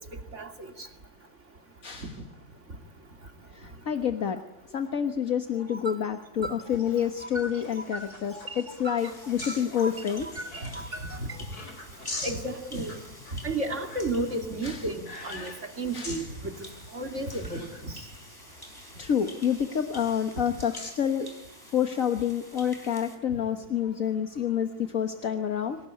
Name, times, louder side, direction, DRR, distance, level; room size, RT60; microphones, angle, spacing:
voice 1, 3.5-4.4 4.7-10.3 14.6-14.8 15.9-16.1 19.0-21.3 21.7-25.8, left 8 dB, 65° left, 7 dB, 1.7 m, -28 dB
sound 1, 6.7-20.9, left 2 dB, 90° left, 5.3 m, -45 dB
voice 2, 7.9-9.1 9.4-9.9 10.2-11.5 12.2-12.9 13.4-16.5 16.9-18.0, right 2 dB, 50° right, 5 dB, 2.8 m, -34 dB
sound 2, 9.0-23.2, left 1 dB, 15° left, 4.3 m, -49 dB
26.0 x 18.5 x 9.9 m, 0.87 s
omnidirectional pair, 1.6 m